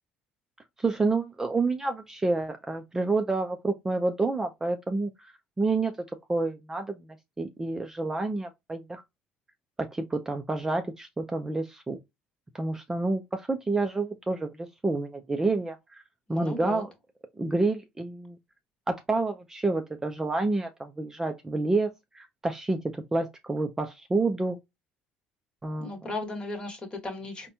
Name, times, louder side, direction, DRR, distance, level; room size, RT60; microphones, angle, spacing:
voice 1, 0.8-5.9 6.3-7.1 7.4-9.0 9.8-12.0 12.5-16.0 16.3-16.9 17.4-18.4 18.9-24.6 25.6-25.9, right 3 dB, 15° right, 0.5 m, -29 dB
voice 2, 16.3-16.8 25.8-27.5, left 2 dB, 25° left, 1.4 m, -36 dB
4.0 x 2.2 x 2.7 m
supercardioid pair, 95°, 3 cm